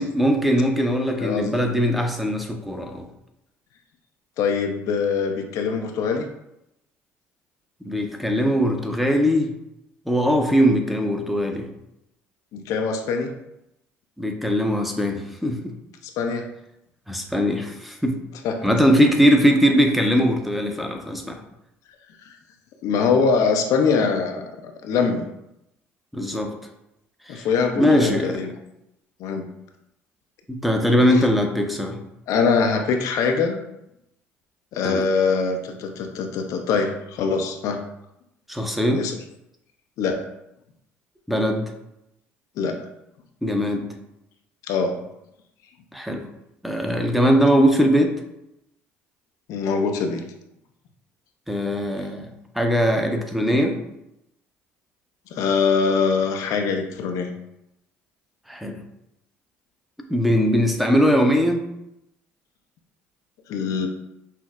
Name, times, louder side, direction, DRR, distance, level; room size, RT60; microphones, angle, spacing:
voice 1, 0.0-3.1 7.9-9.5 10.1-11.7 14.2-15.7 17.1-18.1 18.6-21.4 26.1-26.5 27.3-27.5 27.8-28.4 30.5-32.0 34.8-35.0 38.5-39.0 41.3-41.6 43.4-43.9 45.9-46.3 46.6-48.1 51.5-53.8 58.5-58.8 60.1-61.7, equal, ahead, 3 dB, 0.6 m, -20 dB
voice 2, 1.2-1.6 4.4-6.3 12.5-13.3 16.2-16.5 18.4-18.5 18.9-19.0 22.2-22.4 22.8-24.5 24.8-25.3 27.3-28.5 29.2-29.4 31.1-31.3 32.3-33.7 34.7-37.8 38.9-39.1 40.0-40.2 42.6-42.8 44.7-45.0 49.5-50.2 55.3-57.4 63.5-63.9, left 5 dB, 60° left, 4 dB, 0.4 m, -23 dB
5.6 x 2.0 x 2.3 m, 0.84 s
hypercardioid pair, 60°, 6 cm